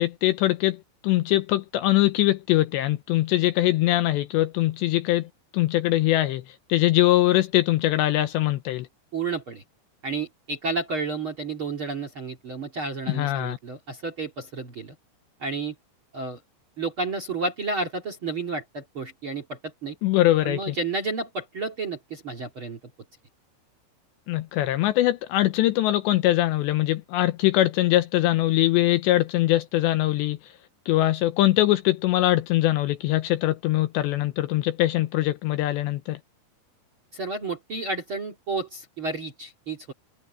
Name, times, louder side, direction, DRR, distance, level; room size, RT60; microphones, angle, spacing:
voice 1, 0.0-8.9 13.1-13.6 20.0-20.8 24.3-30.5 30.9-36.2, left 15 dB, 80° left, 2.7 m, -22 dB
voice 2, 9.1-9.6 10.0-15.0 15.4-15.7 16.1-16.4 16.8-20.0 20.4-22.8 37.1-39.9, right 3 dB, 45° right, 1.8 m, -31 dB
omnidirectional pair, 5.6 m